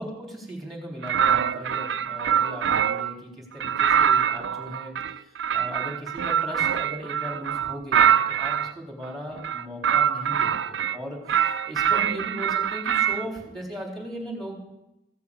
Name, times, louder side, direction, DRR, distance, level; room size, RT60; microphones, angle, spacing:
voice 1, 0.0-14.6, equal, ahead, 0 dB, 3.6 m, -38 dB
sound 1, 1.0-3.1 3.6-8.7 9.4-11.0 11.3-13.3, right 8 dB, 75° right, 0.4 m, -24 dB
15.5 x 8.3 x 8.3 m, 0.95 s
head